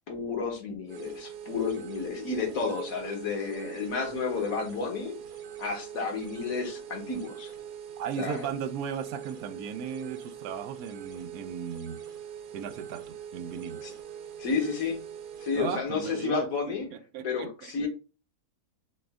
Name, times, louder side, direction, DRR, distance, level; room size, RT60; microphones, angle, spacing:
voice 1, 0.1-5.2 5.6-7.5 8.2-8.5 13.8-13.9 14.4-15.0 15.4-16.9 17.2-17.9, left 5 dB, 65° left, 1.6 m, -31 dB
sound 1, 0.9-15.8, right 9 dB, 60° right, 0.5 m, -43 dB
voice 2, 8.0-12.0 12.5-13.8 15.6-17.9, right 7 dB, 80° right, 1.1 m, -36 dB
6.0 x 2.5 x 3.5 m
omnidirectional pair, 1.6 m